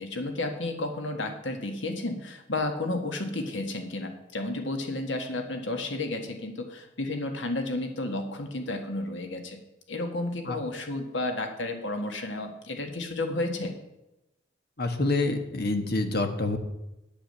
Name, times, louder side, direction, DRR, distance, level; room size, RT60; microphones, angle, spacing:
voice 1, 0.0-9.6 9.9-13.7, left 2 dB, 80° left, 5 dB, 1.6 m, -32 dB
voice 2, 14.8-16.6, left 2 dB, 55° left, 6 dB, 1.5 m, -27 dB
9.5 x 8.8 x 6.6 m, 0.94 s
head